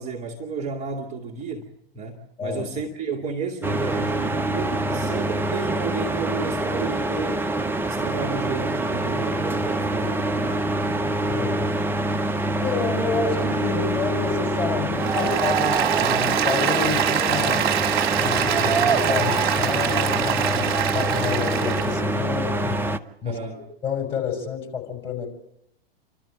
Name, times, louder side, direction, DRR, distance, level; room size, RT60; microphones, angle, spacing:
voice 1, 0.0-1.7 1.9-7.5 7.8-11.1 23.2-23.7, right 5 dB, 25° right, -1 dB, 2.3 m, -32 dB
sound 1, 3.6-23.0, right 1 dB, 5° right, 0.7 m, -25 dB
voice 2, 11.3-11.7 12.6-17.7 18.2-22.8 23.2-23.4 23.8-25.3, left 6 dB, 15° left, 1 dB, 5.5 m, -29 dB
Applause, 15.0-22.0, right 9 dB, 55° right, 2.0 m, -24 dB
28.0 x 13.0 x 8.8 m, 0.80 s
figure-of-eight pair, 100°, 30 cm